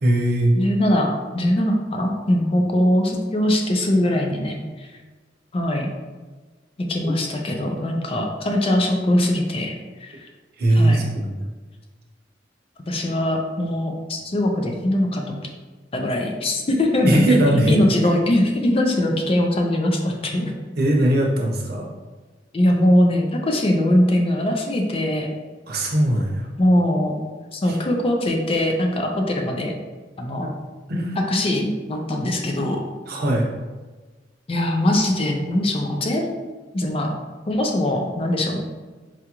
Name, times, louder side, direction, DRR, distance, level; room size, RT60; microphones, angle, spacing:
voice 1, 0.0-0.5 7.0-7.2 10.6-11.3 17.0-17.8 20.8-21.8 25.7-26.5 27.7-27.8 30.9-31.2 33.1-33.5, right 1 dB, 55° right, -1 dB, 0.7 m, -19 dB
voice 2, 0.5-4.9 5.5-5.9 6.8-9.8 10.0-10.2 10.7-11.1 12.9-15.4 15.9-17.4 17.7-20.5 22.5-25.3 26.6-27.2 27.5-29.8 30.2-30.5 31.2-32.8 34.5-36.3 36.7-37.1 37.5-38.6, left 1 dB, 30° left, 2 dB, 0.4 m, -21 dB
4.7 x 2.4 x 2.9 m, 1.3 s
head